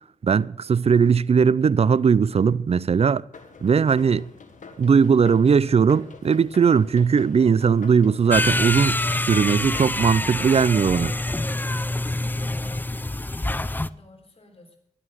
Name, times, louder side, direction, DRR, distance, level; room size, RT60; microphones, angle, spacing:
voice 1, 0.2-3.2 3.6-4.2 4.8-9.0 9.3-11.1, right 6 dB, 50° right, 0.5 m, -19 dB
sound 1, 3.3-12.4, left 4 dB, 75° left, 1.6 m, -46 dB
sound 2, 8.3-13.9, left 2 dB, 15° left, 0.5 m, -26 dB
voice 2, 12.3-14.8, left 2 dB, 50° left, 3.6 m, -52 dB
12.5 x 11.0 x 6.2 m
cardioid pair, 55°, 13 cm